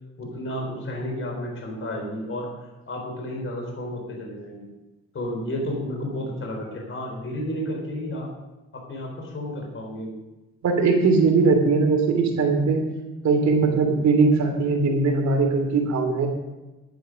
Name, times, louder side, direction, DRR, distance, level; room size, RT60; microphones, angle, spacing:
voice 1, 0.2-2.5 2.9-4.7 5.1-8.3 8.7-10.1, left 1 dB, 45° left, 0 dB, 4.0 m, -32 dB
voice 2, 10.6-12.8 13.2-16.3, right 4 dB, 65° right, 2 dB, 3.1 m, -20 dB
11.0 x 10.0 x 5.2 m, 1.1 s
cardioid pair, 90°, 30 cm